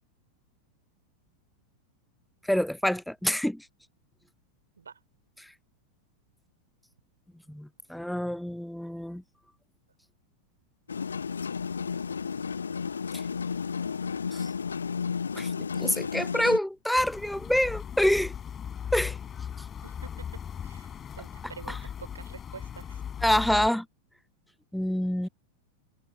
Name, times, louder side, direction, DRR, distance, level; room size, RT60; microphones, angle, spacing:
voice 1, 2.5-3.7 5.4-5.5 7.5-9.2 13.1-13.2 14.3-14.5 15.3-15.5 15.8-18.3 18.9-19.2 21.7-21.8 23.2-23.9 24.7-25.3, equal, ahead, 0.5 m, -27 dB
sound 1, 10.9-16.6, left 6 dB, 70° left, 0.9 m, -32 dB
sound 2, 17.0-23.7, left 8 dB, 25° left, 6.3 m, -38 dB
voice 2, 19.8-20.3 20.6-23.0, right 6 dB, 75° right, 4.7 m, -47 dB
figure-of-eight pair, 90°, 0 cm